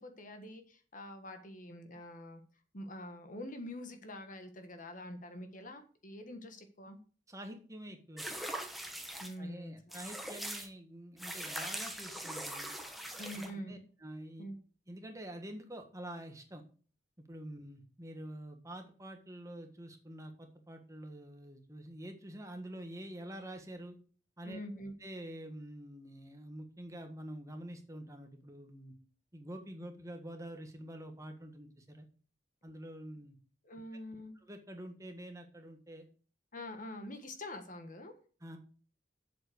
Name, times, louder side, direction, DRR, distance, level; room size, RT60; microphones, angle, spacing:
voice 1, 0.0-2.4 2.7-7.0 9.2-10.0 13.2-13.8 14.4-14.6 24.4-24.9 33.6-34.3 36.5-38.1, left 1 dB, 45° left, 7 dB, 1.5 m, -45 dB
voice 2, 7.3-8.3 9.4-12.7 13.3-14.4 14.9-16.6 17.2-24.0 24.4-24.6 25.0-28.9 29.3-32.1 32.6-33.4 34.4-36.0 36.9-37.0 38.4-38.6, right 1 dB, 15° right, 5 dB, 1.6 m, -47 dB
sound 1, 8.2-9.3 9.9-10.7 11.2-13.5, right 1 dB, ahead, 1.3 m, -41 dB
7.8 x 7.7 x 6.2 m, 0.40 s
head